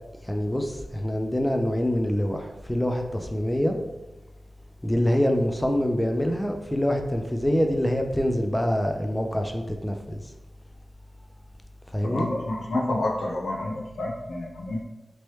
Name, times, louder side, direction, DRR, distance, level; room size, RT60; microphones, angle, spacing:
voice 1, 0.2-3.8 4.8-10.2 11.9-12.3, equal, 10° left, 3 dB, 0.4 m, -25 dB
voice 2, 12.0-14.8, left 1 dB, 80° left, -2 dB, 0.7 m, -29 dB
3.0 x 3.0 x 3.1 m, 1.0 s
cardioid pair, 40°, 0 cm